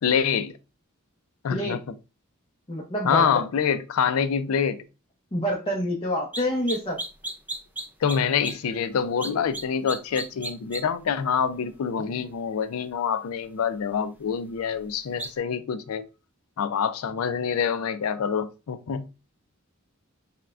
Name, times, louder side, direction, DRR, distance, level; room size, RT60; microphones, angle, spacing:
voice 1, 0.0-0.6 1.4-1.8 3.0-4.8 8.0-16.0 16.6-19.1, left 7 dB, 80° left, 0.4 m, -26 dB
voice 2, 2.7-3.3 5.3-7.0, equal, 25° left, 0.7 m, -27 dB
sound 1, 6.3-6.4 6.7-8.2 8.4-8.5 9.2-9.6 9.9-10.8 15.2-15.3, right 1 dB, 10° right, 0.4 m, -32 dB
5.5 x 2.2 x 2.4 m
head